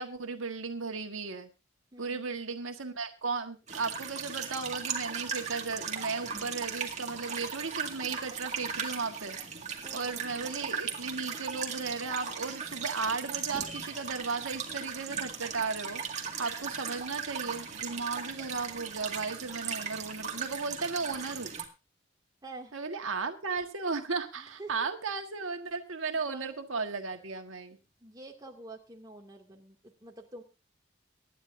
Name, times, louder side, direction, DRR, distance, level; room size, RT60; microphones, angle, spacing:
voice 1, 0.0-1.5 2.0-9.4 9.9-21.5 22.7-27.8, right 4 dB, 90° right, 5 dB, 1.6 m, -35 dB
voice 2, 1.9-2.3 9.8-10.5 22.4-22.8 24.4-24.7 26.1-26.6 28.0-30.4, right 2 dB, 20° right, 1 dB, 2.3 m, -48 dB
sound 1, 3.7-21.6, right 6 dB, 35° right, 2.1 m, -37 dB
23.5 x 10.5 x 2.7 m, 0.29 s
head